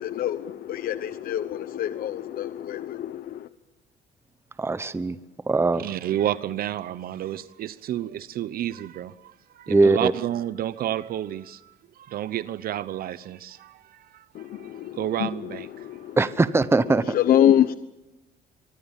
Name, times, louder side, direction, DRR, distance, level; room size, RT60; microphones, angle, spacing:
voice 1, 0.0-3.5 14.3-16.2 17.1-17.7, left 10 dB, 60° left, 1.0 m, -25 dB
voice 2, 4.6-5.2 5.5-5.9 9.7-10.1 16.2-17.1, right 3 dB, 15° right, 1.0 m, -21 dB
voice 3, 5.8-11.7 12.0-14.2 14.5-15.9, right 12 dB, 60° right, 0.9 m, -31 dB
24.5 x 24.0 x 7.4 m
cardioid pair, 110°, 17 cm